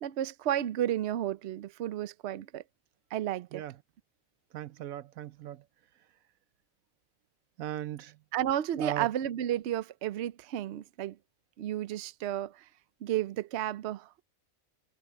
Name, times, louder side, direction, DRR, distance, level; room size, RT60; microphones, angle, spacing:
voice 1, 0.0-2.6 3.1-3.6 8.3-11.2 11.6-12.6 13.0-14.2, right 11 dB, 60° right, 0.9 m, -32 dB
voice 2, 4.5-5.6 7.6-8.2 8.8-9.1, right 12 dB, 85° right, 1.1 m, -37 dB
omnidirectional pair, 1.4 m